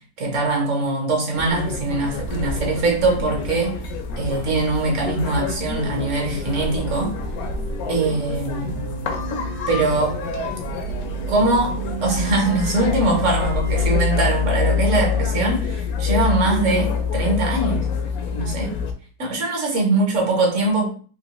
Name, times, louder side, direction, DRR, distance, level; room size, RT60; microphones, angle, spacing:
voice 1, 0.2-3.7 4.2-7.2 7.9-8.8 9.7-10.2 11.3-17.9 18.3-18.7 19.2-20.9, right 2 dB, 55° right, 1.0 m, -22 dB
sound 1, 1.4-18.9, left 5 dB, 70° left, 0.9 m, -26 dB
sound 2, 6.2-15.6, right 7 dB, 80° right, 1.2 m, -37 dB
3.1 x 2.8 x 2.9 m
omnidirectional pair, 1.8 m